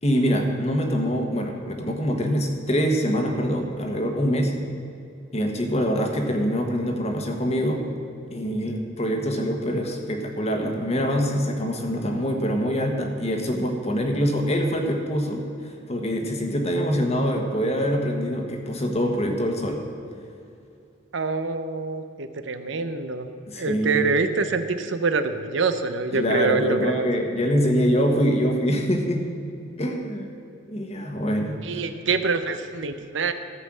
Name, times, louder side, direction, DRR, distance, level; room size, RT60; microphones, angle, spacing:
voice 1, 0.0-4.5 5.3-7.8 8.3-19.9 23.5-24.0 26.1-29.2 29.8-30.3 30.7-31.8, equal, 35° left, 3 dB, 1.3 m, -24 dB
voice 2, 21.1-27.1 31.6-33.3, right 4 dB, 65° right, 9 dB, 0.7 m, -25 dB
14.0 x 5.5 x 7.6 m, 2.5 s
head